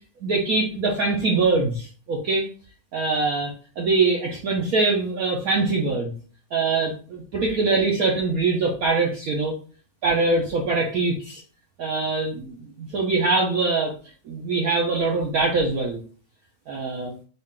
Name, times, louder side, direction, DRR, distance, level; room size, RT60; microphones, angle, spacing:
voice 1, 0.2-2.5 2.9-6.1 6.5-9.5 10.0-11.4 11.8-13.9 14.3-16.0 16.7-17.1, right 3 dB, 85° right, -1 dB, 0.7 m, -23 dB
4.0 x 2.4 x 3.6 m, 0.40 s
omnidirectional pair, 2.3 m